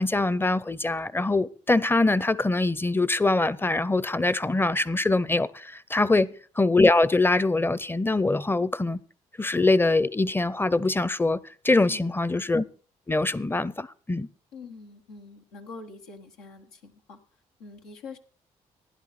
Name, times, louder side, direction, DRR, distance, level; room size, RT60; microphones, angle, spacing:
voice 1, 0.0-6.3 6.6-9.0 9.4-12.6 13.1-14.3, left 2 dB, 15° left, 0.7 m, -23 dB
voice 2, 11.9-12.4 14.5-17.2 17.6-18.2, left 4 dB, 90° left, 1.5 m, -44 dB
15.5 x 10.5 x 4.3 m
supercardioid pair, 55°, 15 cm